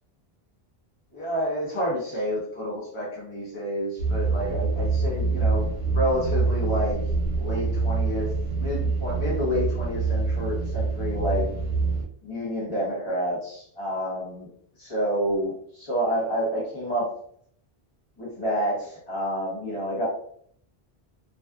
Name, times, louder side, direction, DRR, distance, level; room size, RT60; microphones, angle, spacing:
voice 1, 1.1-7.0 7.4-11.5 12.2-14.5 14.8-17.1 18.2-20.1, equal, 35° left, -6 dB, 0.7 m, -29 dB
sound 1, 4.0-12.0, right 4 dB, 40° right, 0.8 m, -26 dB
2.5 x 2.3 x 2.2 m, 0.62 s
omnidirectional pair, 1.1 m